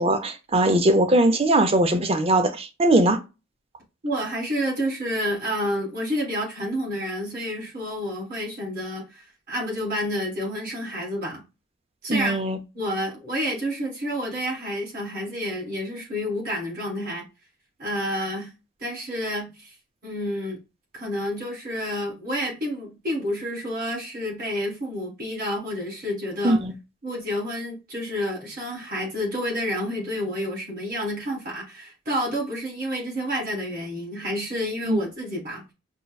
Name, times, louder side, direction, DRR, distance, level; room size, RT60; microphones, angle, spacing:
voice 1, 0.0-3.2 12.1-12.6 26.4-26.7 34.9-35.0, right 1 dB, 30° right, 0.5 m, -20 dB
voice 2, 4.0-11.4 12.0-12.4 12.7-17.2 17.8-18.5 18.8-19.7 20.0-20.6 20.9-26.6 27.0-35.6, equal, 45° right, 1.8 m, -29 dB
5.4 x 2.1 x 2.3 m
head